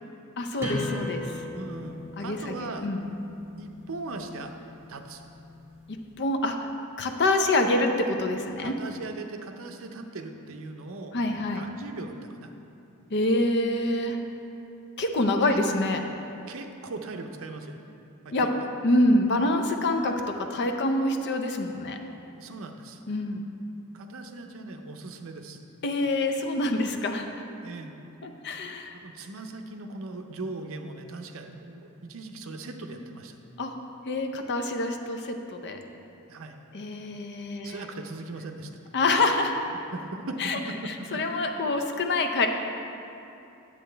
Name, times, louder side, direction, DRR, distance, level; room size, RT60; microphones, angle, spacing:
voice 1, 0.4-1.4 2.2-3.1 6.2-6.7 7.0-8.7 11.1-11.7 13.1-14.2 15.0-16.0 18.3-18.5 18.8-22.0 23.1-23.6 25.8-27.3 28.2-29.0 33.6-33.8 34.1-35.8 36.7-37.8 38.9-39.6 40.4-40.6 40.9-42.5, left 2 dB, 50° left, 5 dB, 0.6 m, -26 dB
sound 1, 0.6-6.0, left 1 dB, 15° right, 1.8 m, -38 dB
voice 2, 1.5-2.9 3.6-4.5 4.9-5.2 8.6-11.2 11.5-12.5 15.5-15.6 16.5-17.8 18.2-18.5 22.4-23.0 23.9-25.6 27.6-27.9 28.9-33.4 36.3-36.5 37.6-38.7 39.9-41.2, right 2 dB, 65° right, 5 dB, 0.6 m, -39 dB
9.7 x 7.6 x 3.3 m, 2.8 s
head